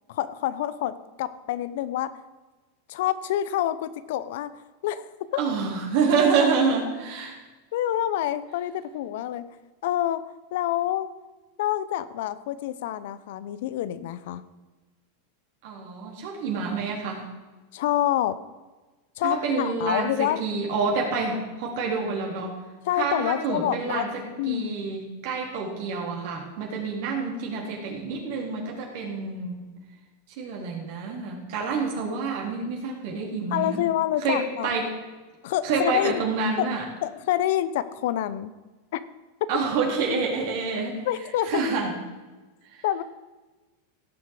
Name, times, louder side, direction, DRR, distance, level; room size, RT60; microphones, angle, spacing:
voice 1, 0.1-2.1 2.9-4.5 4.8-5.4 7.7-9.5 9.8-10.2 10.5-11.1 11.6-14.4 17.7-18.4 19.2-20.5 22.8-24.0 24.4-24.7 33.5-34.8 35.4-36.2 36.6-36.7 37.0-38.5 38.9-39.0 41.1-41.6 42.8-43.0, left 12 dB, 70° left, 15 dB, 0.7 m, -27 dB
voice 2, 5.4-7.4 15.6-17.2 19.2-22.6 23.0-29.6 30.4-33.8 34.2-35.0 35.6-36.8 39.5-41.0 41.5-41.9 42.7-42.8, right 4 dB, 60° right, -1 dB, 3.8 m, -27 dB
17.0 x 7.3 x 4.8 m, 1.2 s
hypercardioid pair, 115°, 0 cm